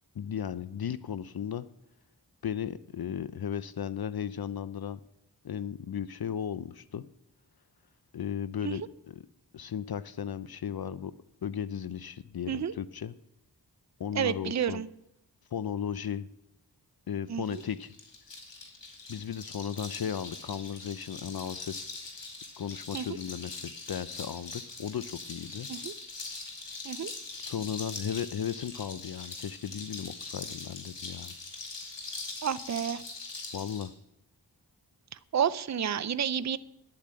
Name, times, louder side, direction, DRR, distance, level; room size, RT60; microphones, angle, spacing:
voice 1, 0.1-1.7 2.4-5.0 5.4-7.0 8.1-9.3 9.5-11.1 11.4-13.1 14.0-14.8 15.5-16.3 17.1-17.9 19.1-21.9 22.6-25.7 27.4-31.3 33.5-33.9, left 8 dB, 60° left, 15 dB, 0.6 m, -35 dB
voice 2, 14.1-14.9 17.3-17.6 22.9-23.1 25.7-25.9 26.8-27.1 32.4-33.0 35.3-36.6, right 8 dB, 40° right, 15 dB, 0.6 m, -30 dB
sound 1, 17.5-33.9, left 3 dB, 85° left, 2.6 m, -42 dB
10.5 x 8.6 x 7.6 m, 0.82 s
cardioid pair, 50°, 42 cm